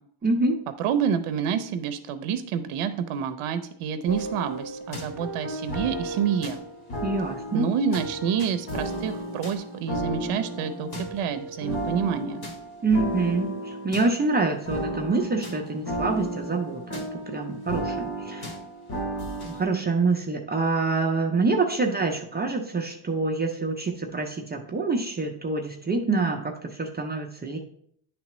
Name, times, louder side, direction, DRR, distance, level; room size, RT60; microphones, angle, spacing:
voice 1, 0.2-0.6 7.0-7.7 12.8-18.5 19.5-27.6, right 3 dB, 20° right, 2 dB, 0.4 m, -26 dB
voice 2, 0.8-6.6 7.5-12.4, right 7 dB, 80° right, 10 dB, 0.6 m, -28 dB
sound 1, 4.1-19.7, right 1 dB, 50° left, 1.3 m, -34 dB
9.7 x 3.3 x 3.0 m, 0.67 s
cardioid pair, 140°, 50 cm